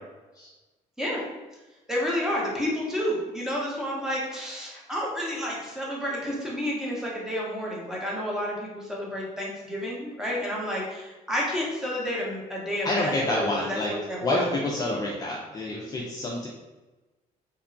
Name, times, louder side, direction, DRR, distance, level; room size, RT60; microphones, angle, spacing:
voice 1, 1.9-14.5, equal, 5° right, -4 dB, 0.8 m, -30 dB
voice 2, 12.8-13.9 14.2-16.5, left 2 dB, 25° left, -3 dB, 0.4 m, -28 dB
2.9 x 2.2 x 2.5 m, 1.1 s
cardioid pair, 105°, 15 cm